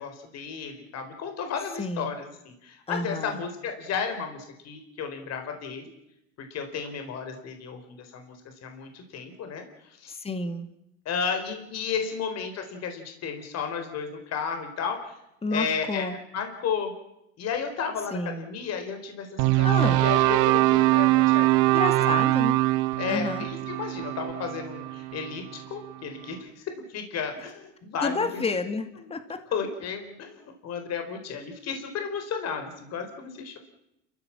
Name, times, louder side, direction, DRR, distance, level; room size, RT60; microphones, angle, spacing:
voice 1, 0.0-5.9 6.4-10.1 11.0-15.2 15.5-16.9 17.4-21.7 22.0-22.1 23.0-28.4 29.0-29.2 29.5-33.6, left 6 dB, 50° left, 6 dB, 4.3 m, -33 dB
voice 2, 1.8-2.1 2.9-3.4 10.1-10.7 15.4-16.2 18.1-18.5 19.6-20.0 20.9-21.0 21.7-22.6 23.1-23.5 28.0-29.4, left 3 dB, 15° left, 9 dB, 2.2 m, -30 dB
sound 1, 19.4-25.6, right 19 dB, 70° right, 1.1 m, -23 dB
29.5 x 15.5 x 7.4 m, 0.83 s
supercardioid pair, 100°, 33 cm